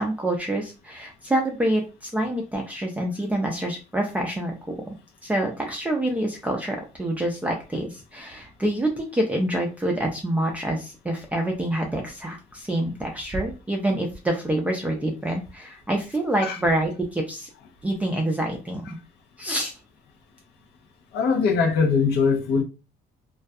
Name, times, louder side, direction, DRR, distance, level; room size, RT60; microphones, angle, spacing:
voice 1, 0.0-4.8 5.2-17.5 17.8-19.0 19.4-19.7, right 1 dB, 10° right, 0.4 m, -26 dB
voice 2, 21.1-22.6, left 5 dB, 80° left, 0.5 m, -21 dB
2.3 x 2.2 x 2.5 m
cardioid pair, 110°, 17 cm